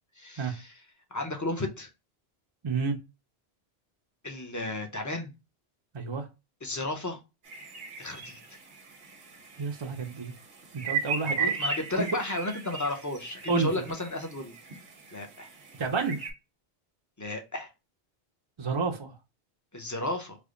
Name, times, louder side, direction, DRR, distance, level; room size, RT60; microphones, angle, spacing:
voice 1, 0.2-0.7 1.1-1.9 4.2-5.3 6.6-7.2 8.0-8.6 11.2-14.5 15.1-15.5 17.2-17.7 19.7-20.4, left 2 dB, 25° left, 0.5 m, -33 dB
voice 2, 2.6-3.0 5.9-6.3 9.6-10.3 10.7-11.5 11.9-12.1 13.5-13.7 15.8-16.2 18.6-19.1, right 4 dB, 35° right, 0.5 m, -30 dB
sound 1, 7.5-16.3, right 5 dB, 70° right, 1.0 m, -37 dB
3.3 x 2.1 x 3.6 m
omnidirectional pair, 1.1 m